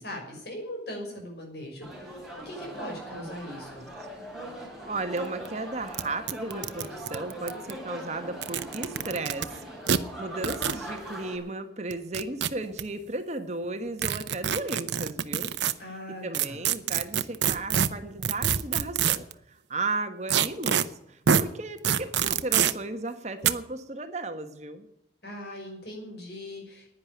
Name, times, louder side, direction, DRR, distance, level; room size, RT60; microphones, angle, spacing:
voice 1, 0.0-3.9 15.8-16.6 25.2-26.9, left 1 dB, 70° left, 1 dB, 5.8 m, -40 dB
sound 1, 1.8-11.4, right 1 dB, ahead, 4.5 m, -41 dB
voice 2, 2.8-3.8 4.8-9.6 10.0-15.5 16.1-24.9, right 2 dB, 40° right, 8 dB, 1.3 m, -35 dB
Clothes - fabric - tear - rip - bedsheet - close, 5.2-5.3 5.5-5.6 5.9-6.0 6.3-7.7 8.3-9.5 9.9-10.0 10.4-10.8 11.9-12.8 14.0-15.7 16.3-19.3 20.3-20.8 21.3-21.4 21.8-22.7 23.4-23.5, right 8 dB, 85° right, 0.8 m, -25 dB
10.5 x 10.0 x 9.2 m, 0.79 s
head